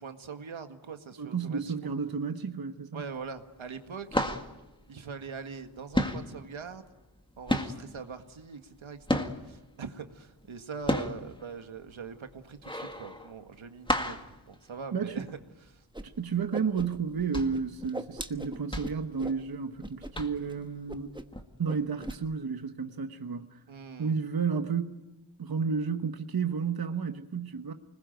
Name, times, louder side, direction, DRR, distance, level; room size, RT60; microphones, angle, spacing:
voice 1, 0.0-1.6 2.9-4.2 4.9-6.9 7.4-15.3 15.7-16.2 23.7-24.2, right 5 dB, 80° right, 1.8 m, -42 dB
voice 2, 1.2-3.0 14.9-15.3 16.2-21.1 21.6-23.6 24.0-25.0 25.4-27.7, right 5 dB, 50° right, 1.2 m, -32 dB
sound 1, 3.0-3.5 3.7-5.7 5.9-9.7 10.1-15.4 15.8-15.9 16.2-16.5 17.0-19.8 20.1-20.6 21.3-21.4, left 1 dB, 10° left, 2.0 m, -32 dB
Whoosh swoosh swish, 15.9-16.0 16.3-17.2 17.5-19.4 19.8-20.1 20.4-20.5 20.9-21.4 21.6-22.2, right 1 dB, 10° right, 1.2 m, -40 dB
25.5 x 20.5 x 9.2 m
wide cardioid pair, 85°, 47 cm